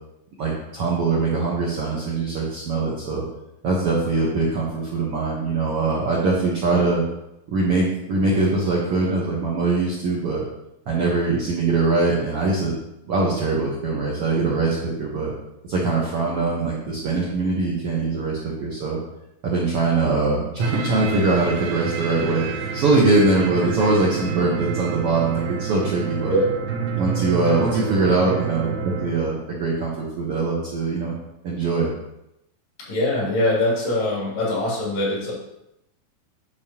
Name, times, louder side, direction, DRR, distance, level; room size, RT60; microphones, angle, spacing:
voice 1, 0.4-3.2 3.6-7.0 7.5-10.4 10.9-12.7 13.0-15.3 15.7-19.0 19.4-22.5 22.7-26.3 26.9-31.1 31.4-31.9, right 3 dB, 65° right, -4 dB, 1.4 m, -22 dB
sound 1, 20.6-29.1, right 6 dB, 90° right, 2.9 m, -29 dB
voice 2, 32.9-35.3, left 1 dB, 70° left, -5 dB, 4.3 m, -22 dB
9.1 x 6.6 x 2.9 m, 0.85 s
omnidirectional pair, 4.2 m